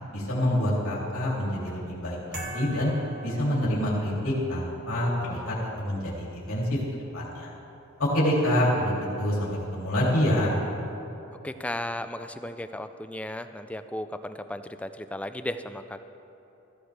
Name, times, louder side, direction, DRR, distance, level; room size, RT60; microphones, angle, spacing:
voice 1, 0.1-2.9 3.2-6.8 7.1-7.5 8.0-10.5, equal, 85° left, -6 dB, 2.8 m, -26 dB
sound 1, 2.3-4.2, right 1 dB, 45° right, 2.4 m, -41 dB
voice 2, 11.4-16.1, left 1 dB, 5° left, 9 dB, 0.4 m, -35 dB
14.5 x 14.0 x 3.3 m, 3.0 s
head